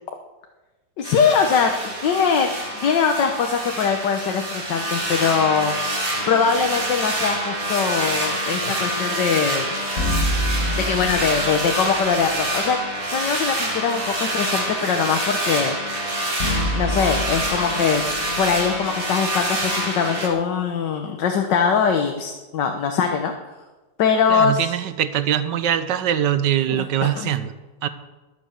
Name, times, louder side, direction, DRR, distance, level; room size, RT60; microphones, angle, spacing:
voice 1, 1.0-2.5 2.8-5.7 6.3-9.7 10.8-12.8 13.1-15.7 16.7-18.0 18.4-23.3 24.0-24.7 26.7-27.3, left 6 dB, 85° left, 4 dB, 1.7 m, -22 dB
sound 1, 1.0-20.3, right 1 dB, 30° right, 2.4 m, -26 dB
sound 2, 10.0-12.1 16.4-19.6, left 1 dB, 50° left, 1.9 m, -27 dB
voice 2, 24.3-27.5 27.8-27.9, right 10 dB, 90° right, 12 dB, 1.6 m, -22 dB
21.0 x 7.8 x 6.6 m, 1.2 s
omnidirectional pair, 1.9 m